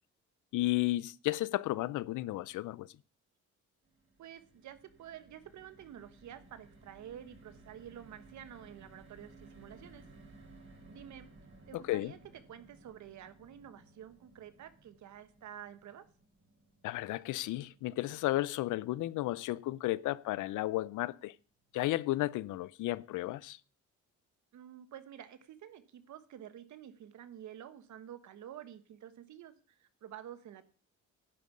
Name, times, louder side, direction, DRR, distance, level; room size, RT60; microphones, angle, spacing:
voice 1, 0.5-2.9 11.7-12.1 16.8-21.3 21.7-23.6, left 17 dB, 85° left, 0.5 m, -33 dB
sound 1, 3.8-20.1 20.5-20.7 20.9-21.2, right 2 dB, 40° right, 3.6 m, -59 dB
voice 2, 4.2-10.0 10.8-11.3 11.7-12.2 12.5-16.0 24.5-29.5 29.8-30.7, right 10 dB, 70° right, 1.3 m, -50 dB
11.0 x 5.4 x 8.3 m
cardioid pair, 90°, 30 cm